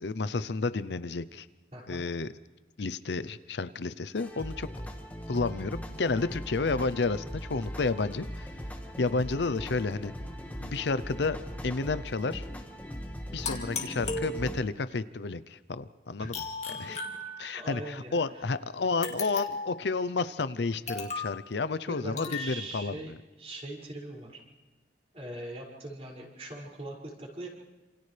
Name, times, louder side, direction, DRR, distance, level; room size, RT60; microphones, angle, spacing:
voice 1, 0.0-1.5 1.9-2.3 2.8-4.7 5.3-8.5 9.0-10.1 10.6-11.4 11.6-12.5 13.3-16.4 16.8-17.0 17.4-23.2, left 3 dB, 75° left, 14 dB, 0.6 m, -31 dB
voice 2, 1.7-2.0 16.2-16.3 16.7-17.0 17.5-18.4 21.8-23.1 23.4-24.4 25.1-27.5, right 1 dB, 35° right, -3 dB, 6.1 m, -41 dB
sound 1, 4.2-14.6, equal, 10° left, 1.6 m, -40 dB
sound 2, 13.4-14.9 16.3-17.8 19.0-19.8 20.9-21.4 22.2-22.5, left 3 dB, 40° left, 2.4 m, -36 dB
28.5 x 27.0 x 3.4 m, 1.1 s
head